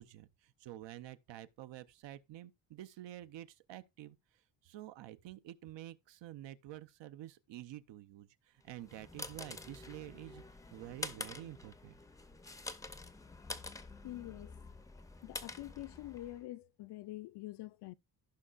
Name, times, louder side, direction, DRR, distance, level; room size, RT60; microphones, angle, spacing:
voice 1, 0.0-4.2 4.6-10.4 10.7-12.0, right 14 dB, 75° right, 0.7 m, -49 dB
sound 1, 8.7-16.4, left 3 dB, 10° left, 0.5 m, -47 dB
voice 2, 14.0-14.5 15.2-17.9, left 16 dB, 65° left, 0.5 m, -46 dB
15.5 x 5.4 x 2.4 m
cardioid pair, 140°, 43 cm